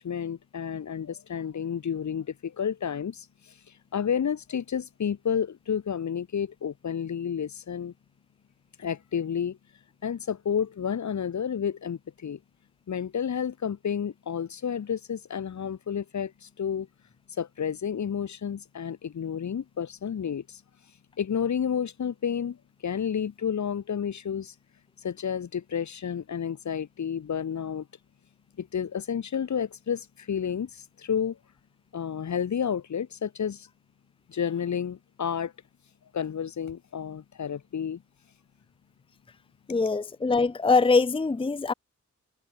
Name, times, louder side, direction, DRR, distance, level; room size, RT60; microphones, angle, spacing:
voice 1, 0.0-3.3 3.9-7.9 8.8-9.6 10.0-12.4 12.9-16.9 17.4-20.6 21.2-22.6 22.8-24.5 25.0-27.9 28.6-31.4 31.9-33.7 34.3-35.5 36.1-38.0, left 7 dB, 65° left, 1.7 m, -30 dB
voice 2, 39.7-41.7, left 4 dB, 15° left, 0.6 m, -23 dB
wide cardioid pair, 145°, 30 cm